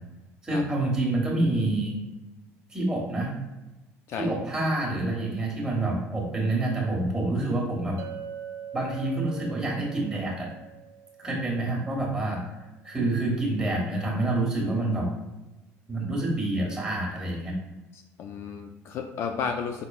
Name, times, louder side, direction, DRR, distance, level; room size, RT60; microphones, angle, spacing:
voice 1, 0.4-1.9 2.7-3.3 4.2-8.0 8.7-10.5 11.2-12.4 12.8-15.1 15.9-17.5, right 2 dB, 10° right, -2 dB, 1.4 m, -27 dB
voice 2, 4.1-4.4 18.2-19.8, left 6 dB, 55° left, 6 dB, 0.4 m, -32 dB
Chink clink, 8.0-12.2, right 8 dB, 60° right, 0.6 m, -43 dB
5.3 x 4.1 x 2.4 m, 1.1 s
cardioid pair, 140°, 5 cm